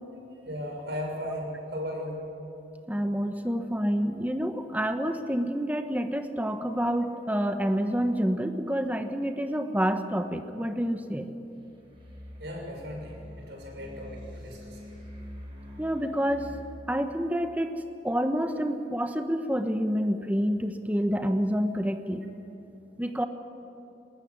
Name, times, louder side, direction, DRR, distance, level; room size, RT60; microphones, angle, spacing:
voice 1, 0.3-2.2 12.4-15.0, equal, 70° right, 0 dB, 6.6 m, -36 dB
voice 2, 2.9-11.3 15.8-16.5 16.9-17.7 18.0-22.2 23.0-23.3, equal, 10° right, 7 dB, 1.0 m, -28 dB
sound 1, 11.6-16.6, left 1 dB, 30° right, 7.8 m, -45 dB
21.5 x 20.0 x 9.7 m, 2.9 s
head